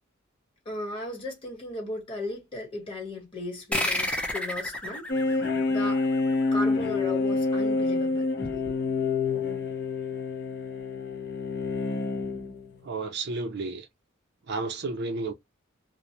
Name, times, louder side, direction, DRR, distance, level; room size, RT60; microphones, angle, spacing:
voice 1, 0.6-5.1 5.7-6.0 6.5-8.7, left 1 dB, 25° left, 1.4 m, -36 dB
sound 1, 3.7-6.8, left 1 dB, 5° left, 0.5 m, -31 dB
sound 2, 5.1-12.7, left 3 dB, 55° left, 0.7 m, -27 dB
voice 2, 12.8-13.9 14.5-15.3, right 3 dB, 55° right, 0.5 m, -32 dB
2.4 x 2.0 x 2.9 m
head